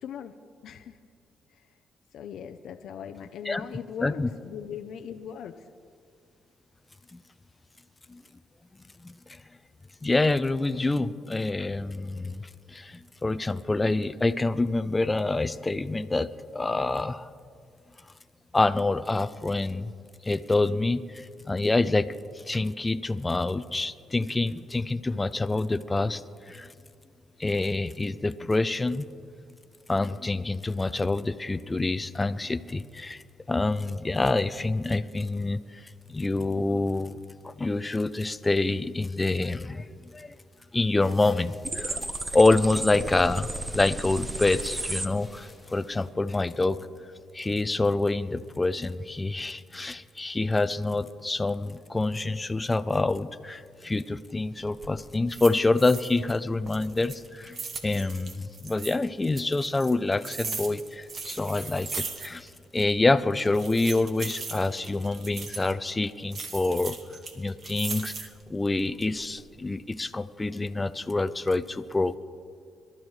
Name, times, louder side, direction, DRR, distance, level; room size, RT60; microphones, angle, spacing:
voice 1, 0.0-0.4 0.6-1.0 1.5-1.6 2.1-5.6, left 8 dB, 75° left, 6 dB, 0.5 m, -39 dB
voice 2, 9.0-9.4 10.0-17.3 18.5-19.9 20.2-22.2 22.5-26.2 26.5-26.7 27.4-29.1 29.9-33.2 33.5-37.2 37.4-39.9 40.1-40.3 40.7-42.1 42.3-46.8 47.3-57.6 57.8-62.5 62.7-67.0 67.4-72.2, left 2 dB, 20° left, 13 dB, 0.5 m, -27 dB
sound 1, 41.0-46.1, left 1 dB, ahead, 2.3 m, -54 dB
sound 2, 41.6-45.1, right 2 dB, 20° right, 1.0 m, -33 dB
sound 3, 54.6-54.9 55.3-56.4 56.6-59.0 59.4-62.5 62.8-62.9 63.4-65.7 66.3-68.4 68.9-69.4, right 4 dB, 50° right, 1.2 m, -38 dB
23.0 x 12.0 x 3.2 m, 2.2 s
cardioid pair, 90°, 0 cm